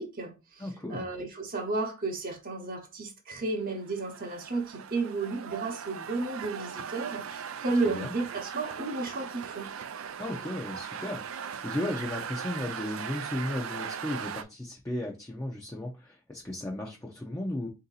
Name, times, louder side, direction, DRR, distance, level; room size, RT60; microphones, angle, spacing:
voice 1, 0.0-0.6 0.9-9.7, right 3 dB, 45° right, 0.9 m, -33 dB
voice 2, 0.6-1.1 7.9-8.1 10.2-11.3 11.6-17.7, left 1 dB, 15° left, 0.6 m, -35 dB
sound 1, 3.7-14.4, right 7 dB, 80° right, 0.4 m, -39 dB
3.7 x 2.8 x 3.9 m
head